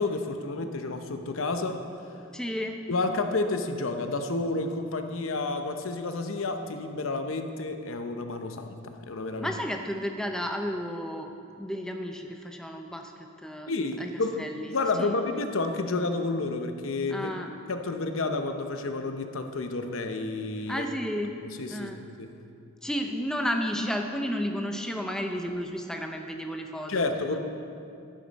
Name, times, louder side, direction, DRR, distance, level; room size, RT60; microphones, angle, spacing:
voice 1, 0.0-1.8 2.9-9.5 13.7-14.5 14.7-17.3 17.7-20.9 21.6-21.9 22.2-22.3 26.9-27.4, left 3 dB, 85° left, 7 dB, 0.7 m, -30 dB
voice 2, 2.3-2.8 9.4-11.3 11.6-13.7 14.0-14.1 14.4-15.2 17.1-17.5 20.7-21.3 21.7-22.0 22.8-27.0, equal, 5° left, 3 dB, 0.5 m, -32 dB
11.0 x 10.5 x 4.1 m, 2.6 s
head